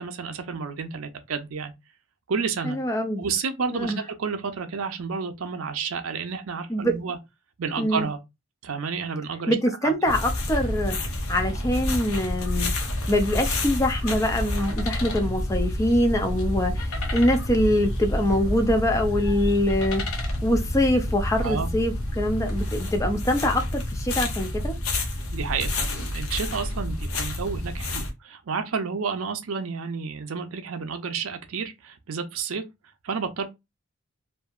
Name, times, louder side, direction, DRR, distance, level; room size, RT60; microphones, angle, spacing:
voice 1, 0.0-1.7 2.3-2.8 3.2-3.9 4.2-7.2 7.6-8.2 8.6-9.6 9.8-9.9 21.4-21.7 25.3-32.6 33.0-33.5, right 5 dB, 80° right, 0.6 m, -30 dB
voice 2, 2.6-3.2 3.7-4.0 6.7-6.9 7.8-8.1 9.5-11.0 11.3-12.7 13.1-20.0 20.4-24.8, left 1 dB, 15° left, 0.4 m, -24 dB
sound 1, 10.0-28.1, left 1 dB, 85° left, 0.8 m, -28 dB
2.7 x 2.5 x 2.4 m
head